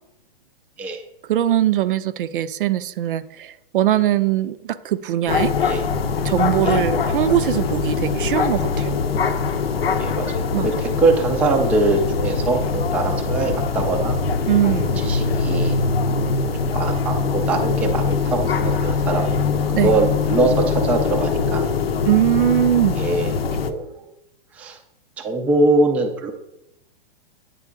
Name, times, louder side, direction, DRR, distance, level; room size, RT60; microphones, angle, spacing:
voice 1, 1.2-5.5 6.2-9.0 10.5-10.9 14.5-15.0 19.7-20.0 22.0-23.0, right 12 dB, 65° right, 13 dB, 0.5 m, -21 dB
sound 1, 5.3-23.7, left 5 dB, 90° left, 0.7 m, -22 dB
voice 2, 10.0-10.7 11.0-14.2 15.0-15.8 16.6-19.4 19.8-21.7 23.0-23.3 23.6-23.9 24.5-24.8 25.2-26.3, right 3 dB, 5° right, 3 dB, 0.3 m, -22 dB
9.2 x 3.6 x 3.6 m, 0.85 s
hypercardioid pair, 125°, 29 cm